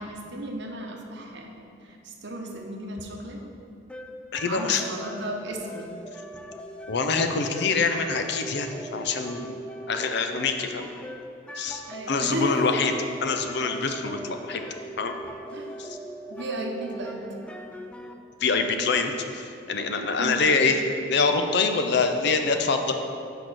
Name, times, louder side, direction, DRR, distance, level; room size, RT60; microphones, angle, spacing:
voice 1, 0.0-3.4 4.4-5.9 11.9-12.8 15.5-15.8 16.3-17.3 20.2-20.5, right 1 dB, 65° right, 2 dB, 0.9 m, -34 dB
sound 1, 3.9-18.1, right 1 dB, 5° left, 0.3 m, -40 dB
voice 2, 4.3-4.8 6.9-9.6 9.9-10.9 11.6-11.8 12.1-12.9 13.2-14.6 15.0-15.1 15.8-16.0 18.4-20.8 21.1-22.9, left 4 dB, 60° left, 6 dB, 0.6 m, -25 dB
6.1 x 5.0 x 6.2 m, 2.5 s
head